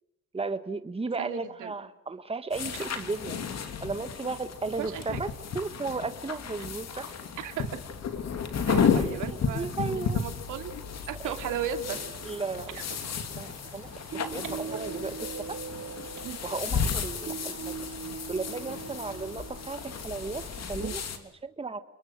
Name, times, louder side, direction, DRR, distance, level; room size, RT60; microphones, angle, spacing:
voice 1, 0.3-3.4 3.8-5.3 5.5-7.1 9.3-10.2 11.2-11.5 12.2-12.8 13.4-15.6 16.4-17.8 18.3-21.8, right 4 dB, 20° right, 11 dB, 1.5 m, -35 dB
voice 2, 1.2-1.7 4.8-5.2 7.4-7.6 8.7-10.7 11.1-12.0 14.7-14.8 16.2-16.4, right 9 dB, 90° right, 7 dB, 2.7 m, -35 dB
sound 1, 2.5-21.2, left 6 dB, 60° left, 3.1 m, -33 dB
Motor vehicle (road) / Engine starting, 6.8-11.8, left 5 dB, 80° left, 5.6 m, -48 dB
sound 2, 11.9-20.9, right 6 dB, 45° right, 7.5 m, -42 dB
29.5 x 22.5 x 6.3 m, 0.82 s
cardioid pair, 90°, 30 cm